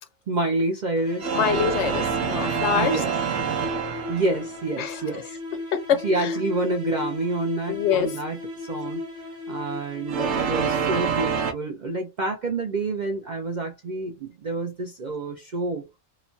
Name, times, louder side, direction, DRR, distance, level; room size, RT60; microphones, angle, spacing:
voice 1, 0.3-1.4 2.7-3.1 4.1-5.4 6.0-9.0 9.5-15.9, right 2 dB, 60° right, 0.4 m, -28 dB
sound 1, 1.0-11.2, left 2 dB, 45° right, 1.1 m, -36 dB
sound 2, 1.2-4.6 10.1-11.5, right 7 dB, 85° right, 1.0 m, -26 dB
voice 2, 1.3-3.0 4.8-5.2 5.7-6.3 7.7-8.1, left 8 dB, 70° left, 0.8 m, -25 dB
3.0 x 2.1 x 2.5 m
omnidirectional pair, 1.3 m